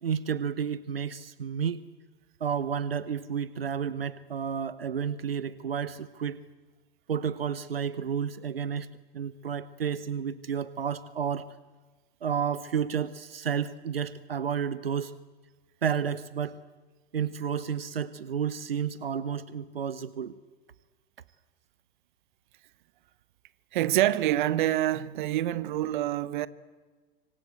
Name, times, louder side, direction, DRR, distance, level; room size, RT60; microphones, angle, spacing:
voice 1, 0.0-1.8 2.4-6.4 7.1-11.5 12.2-15.1 15.8-16.6 17.1-20.4, right 7 dB, 80° right, 1.0 m, -31 dB
voice 2, 23.7-26.5, right 13 dB, 55° right, 1.2 m, -26 dB
26.5 x 25.0 x 8.2 m
figure-of-eight pair, 95°, 29 cm